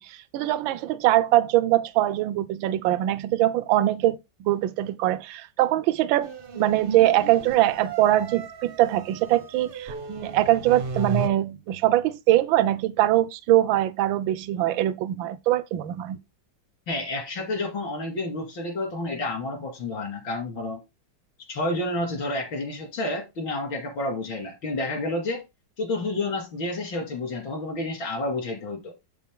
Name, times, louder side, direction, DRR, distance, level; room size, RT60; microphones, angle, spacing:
voice 1, 0.1-16.2, right 14 dB, 80° right, 1.4 m, -23 dB
sound 1, 6.2-11.3, right 4 dB, 50° right, 0.6 m, -35 dB
voice 2, 16.9-20.8 21.5-25.4 25.8-28.9, left 2 dB, 85° left, 3.0 m, -30 dB
7.6 x 7.1 x 3.7 m
omnidirectional pair, 2.1 m